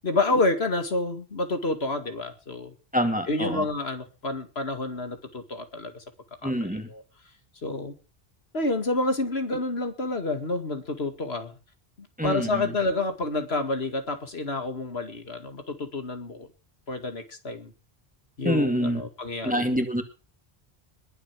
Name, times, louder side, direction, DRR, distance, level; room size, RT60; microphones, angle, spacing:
voice 1, 0.0-2.7 3.3-6.0 6.4-7.0 7.6-7.9 8.5-11.5 12.0-16.5 16.9-17.7 18.4-19.7, left 2 dB, 80° left, 7 dB, 2.4 m, -29 dB
voice 2, 2.9-3.7 6.4-6.9 12.2-12.7 18.4-19.0 19.4-20.0, equal, 10° right, 6 dB, 2.2 m, -26 dB
21.0 x 8.2 x 6.1 m, 0.35 s
omnidirectional pair, 1.0 m